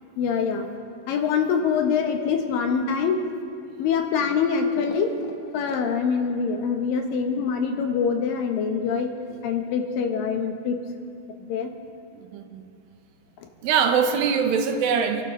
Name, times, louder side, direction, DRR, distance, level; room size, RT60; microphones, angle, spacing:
voice 1, 0.2-0.7 1.1-3.2 3.8-10.8 11.4-11.7, left 6 dB, 75° left, 4 dB, 2.7 m, -24 dB
voice 2, 12.1-12.6 13.6-15.2, right 6 dB, 85° right, 6 dB, 2.7 m, -23 dB
27.0 x 11.5 x 3.1 m, 2.6 s
omnidirectional pair, 4.1 m